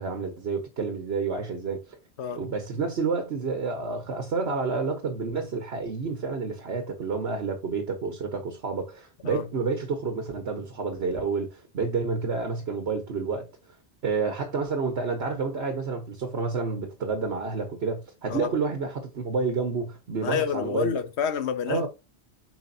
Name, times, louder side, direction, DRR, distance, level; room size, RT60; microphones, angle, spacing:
voice 1, 0.0-2.0 2.4-13.5 14.0-20.9 21.7-21.9, right 4 dB, 70° right, 1.4 m, -29 dB
voice 2, 20.2-21.9, left 7 dB, 80° left, 1.1 m, -28 dB
7.2 x 5.0 x 2.7 m
omnidirectional pair, 1.1 m